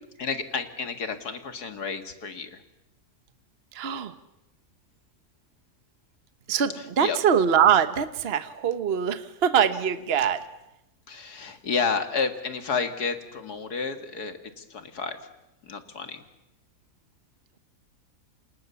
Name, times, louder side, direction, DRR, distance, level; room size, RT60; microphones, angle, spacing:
voice 1, 0.2-2.6 6.8-7.2 11.1-15.2 15.6-16.2, left 5 dB, 75° left, 8 dB, 2.5 m, -31 dB
voice 2, 3.7-4.1 6.5-10.4, right 8 dB, 45° right, 11 dB, 1.2 m, -23 dB
29.0 x 27.0 x 7.1 m, 0.93 s
omnidirectional pair, 1.7 m